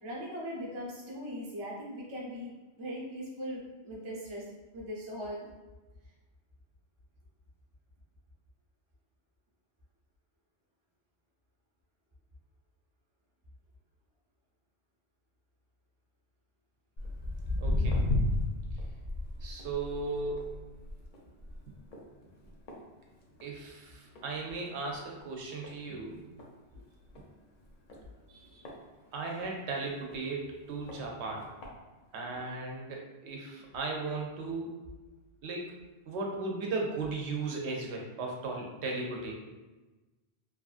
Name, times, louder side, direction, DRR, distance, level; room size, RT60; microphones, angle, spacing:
voice 1, 0.0-4.4 4.7-5.5 28.3-28.6, equal, 35° right, -3 dB, 0.5 m, -40 dB
Walk footsteps, 17.0-23.6 23.9-24.3 24.9-25.0 25.6-25.7 26.1-26.2 26.4-26.5 27.1-27.2 27.9-29.5 30.1-30.2 30.9-31.0 31.4-31.7 32.4-32.5, left 2 dB, 55° left, 0.7 m, -33 dB
voice 2, 17.6-18.0 19.4-20.5 23.4-26.2 29.1-31.5 32.1-34.8 35.4-35.7 36.1-39.3, right 3 dB, 85° right, 0 dB, 0.9 m, -36 dB
2.8 x 2.4 x 2.4 m, 1.2 s
omnidirectional pair, 1.1 m